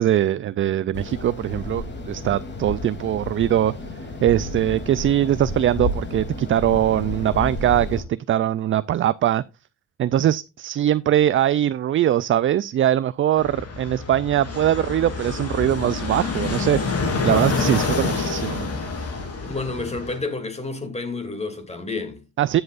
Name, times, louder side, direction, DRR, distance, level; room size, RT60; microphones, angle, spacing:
voice 1, 0.0-3.7 4.2-9.4 10.0-18.7 22.4-22.6, right 11 dB, 45° right, 0.4 m, -21 dB
sound 1, 0.9-8.0, left 2 dB, 35° left, 3.0 m, -31 dB
Fixed-wing aircraft airplane, 13.4-20.2, left 4 dB, 50° left, 3.4 m, -27 dB
voice 2, 19.4-22.2, left 3 dB, 20° left, 2.6 m, -30 dB
14.5 x 7.9 x 2.5 m
cardioid pair, 90°, 30 cm